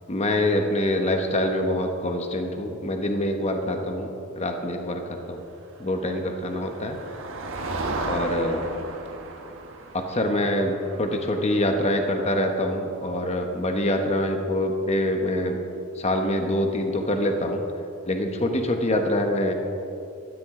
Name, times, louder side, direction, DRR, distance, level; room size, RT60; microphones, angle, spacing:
voice 1, 0.1-4.1 4.4-5.4 5.8-7.0 8.0-8.6 9.9-15.6 16.0-17.6 18.1-19.5, left 1 dB, 30° left, 4 dB, 1.2 m, -25 dB
Motor vehicle (road), 5.8-13.5, right 2 dB, 65° right, 1.4 m, -36 dB
17.5 x 13.0 x 3.8 m, 2.7 s
head